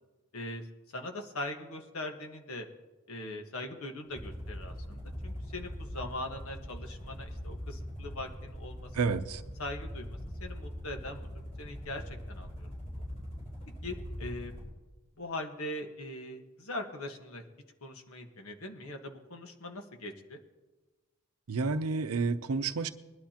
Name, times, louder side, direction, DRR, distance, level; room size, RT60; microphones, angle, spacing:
voice 1, 0.3-0.7 0.9-2.7 3.1-9.2 9.6-11.3 11.6-12.0 12.3-12.7 13.8-14.6 15.2-17.4 17.8-20.4, left 1 dB, 75° left, 4 dB, 1.4 m, -41 dB
sound 1, 4.1-14.7, equal, 35° left, 4.2 m, -42 dB
voice 2, 8.9-9.4 21.5-22.9, right 4 dB, 85° right, 10 dB, 0.6 m, -30 dB
21.0 x 11.5 x 2.9 m, 1.2 s
head